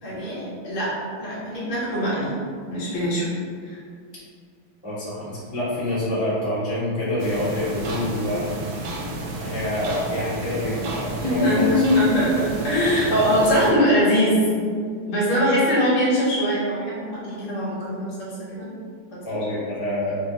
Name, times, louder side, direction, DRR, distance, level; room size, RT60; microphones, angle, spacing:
voice 1, 0.0-0.9 1.2-2.3 2.7-3.3 3.7-3.8 11.2-14.3 15.1-18.7 19.3-19.4, equal, 75° left, -7 dB, 1.9 m, -22 dB
voice 2, 4.8-8.9 9.4-11.9 19.2-20.2, left 1 dB, 5° right, -12 dB, 0.6 m, -27 dB
sound 1, 7.2-13.7, right 2 dB, 80° right, 1.5 m, -32 dB
5.4 x 2.0 x 2.8 m, 2.1 s
omnidirectional pair, 2.4 m